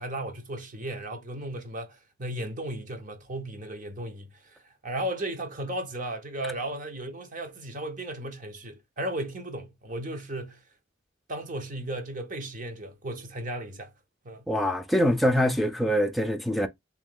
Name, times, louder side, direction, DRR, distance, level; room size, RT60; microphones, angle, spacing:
voice 1, 0.0-10.6 11.3-13.9 14.2-14.5, right 1 dB, 40° right, 0.8 m, -35 dB
voice 2, 14.5-16.7, equal, ahead, 0.4 m, -24 dB
3.0 x 2.9 x 3.6 m
head